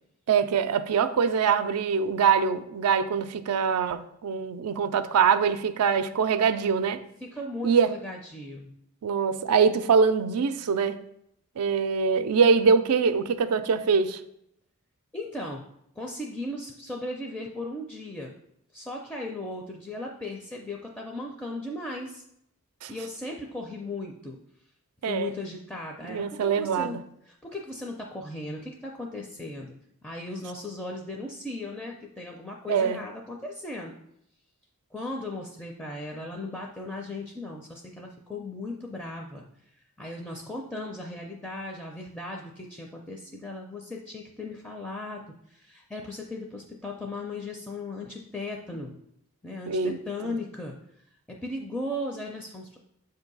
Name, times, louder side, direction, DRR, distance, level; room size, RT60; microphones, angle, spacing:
voice 1, 0.3-7.0 7.6-7.9 9.0-11.0 11.6-14.2 22.8-22.9 25.0-25.3 26.0-27.0 32.7-33.0 49.7-50.0 50.2-50.3, right 6 dB, 85° right, 0.4 m, -23 dB
voice 2, 7.2-8.7 15.1-15.6 16.0-18.3 18.7-22.2 22.9-24.4 25.0-27.0 27.2-29.7 30.0-33.9 34.9-39.4 40.0-45.2 45.5-49.0 49.4-50.7 51.4-52.8, left 2 dB, 5° left, 0.4 m, -37 dB
7.1 x 2.7 x 5.3 m
head